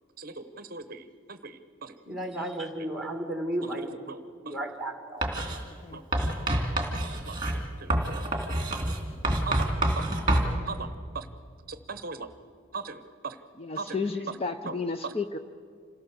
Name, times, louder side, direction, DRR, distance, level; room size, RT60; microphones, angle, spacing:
voice 1, 0.2-1.9 2.4-2.5 4.1-4.6 5.9-6.0 7.2-7.4 7.8-8.2 9.4-10.1 10.7-10.9 11.1-11.3 11.7-12.3 12.7-13.4 13.8-14.0 14.3-14.4 14.6-14.7 15.0-15.1, right 4 dB, 45° right, 10 dB, 0.9 m, -39 dB
voice 2, 2.1-4.0 4.4-5.2, right 1 dB, ahead, 4 dB, 2.1 m, -33 dB
Writing, 5.2-5.6 6.1-10.5, right 1 dB, 20° right, 2.6 m, -27 dB
voice 3, 5.7-6.0 13.6-15.4, left 4 dB, 30° left, 8 dB, 0.6 m, -33 dB
27.0 x 17.5 x 6.8 m, 2.3 s
head